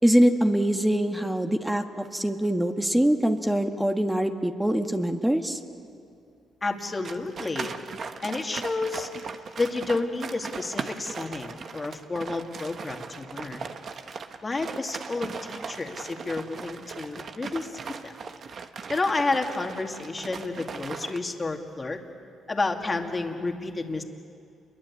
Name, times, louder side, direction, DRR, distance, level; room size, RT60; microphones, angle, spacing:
voice 1, 0.0-5.6, equal, 5° right, 5 dB, 1.5 m, -23 dB
voice 2, 6.6-7.7 8.2-9.1 9.6-13.7 14.4-18.1 18.9-22.0 22.5-24.0, left 3 dB, 25° left, 4 dB, 2.3 m, -30 dB
sound 1, 7.0-21.2, right 5 dB, 50° right, 1.3 m, -38 dB
29.0 x 22.5 x 8.5 m, 2.4 s
cardioid pair, 90°, 0 cm